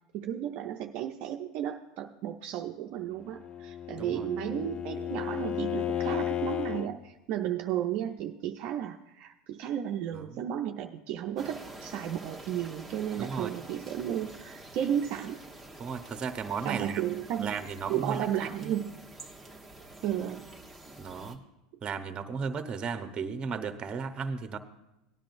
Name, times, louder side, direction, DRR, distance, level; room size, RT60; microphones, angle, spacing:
voice 1, 0.1-15.4 16.6-17.6 17.9-19.0 20.0-20.5, right 10 dB, 50° right, 3 dB, 0.6 m, -33 dB
Bowed string instrument, 3.2-6.9, left 10 dB, 30° left, 0.5 m, -33 dB
sound 1, 11.4-21.3, right 2 dB, 5° left, 1.2 m, -48 dB
voice 2, 13.2-13.5 15.8-17.0 17.4-18.7 21.0-21.4 21.8-24.6, right 5 dB, 30° right, 8 dB, 0.9 m, -35 dB
18.0 x 10.5 x 2.6 m, 0.93 s
hypercardioid pair, 110°, 3 cm